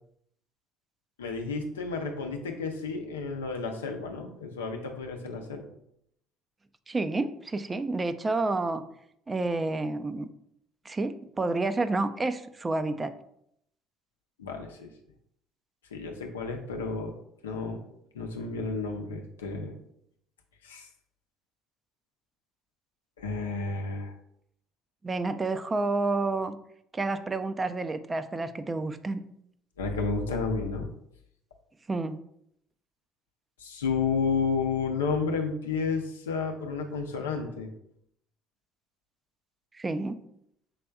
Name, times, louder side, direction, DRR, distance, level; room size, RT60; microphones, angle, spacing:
voice 1, 1.2-5.6 14.4-14.9 15.9-17.1 17.4-17.8 18.1-19.7 20.6-20.9 23.2-24.1 29.8-30.9 33.6-37.7, left 4 dB, 90° left, 3 dB, 0.5 m, -31 dB
voice 2, 6.9-8.8 9.3-10.3 10.9-13.1 25.0-26.6 26.9-29.2 31.9-32.2 39.8-40.2, right 3 dB, 25° right, 11 dB, 0.4 m, -29 dB
5.5 x 3.3 x 2.3 m, 0.73 s
hypercardioid pair, 60°, 0 cm